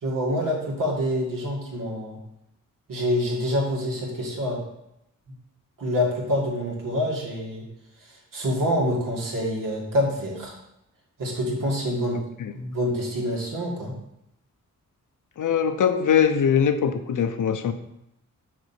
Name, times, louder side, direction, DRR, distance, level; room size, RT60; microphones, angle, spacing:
voice 1, 0.0-2.2 2.9-4.6 5.8-7.6 8.0-10.5 11.2-12.2 12.5-13.9, equal, 85° right, -3 dB, 2.4 m, -26 dB
voice 2, 15.4-17.7, left 7 dB, 70° left, 9 dB, 0.7 m, -22 dB
6.3 x 5.2 x 5.8 m, 0.83 s
wide cardioid pair, 145°, 32 cm